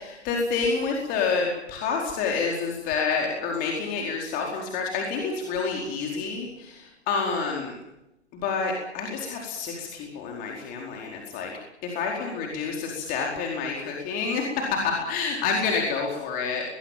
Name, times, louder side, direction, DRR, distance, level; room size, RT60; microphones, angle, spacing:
voice 1, 0.0-7.7 8.3-11.5 11.8-16.6, left 5 dB, 25° left, 0 dB, 4.6 m, -28 dB
22.5 x 21.5 x 7.6 m, 0.88 s
figure-of-eight pair, 130°, 35 cm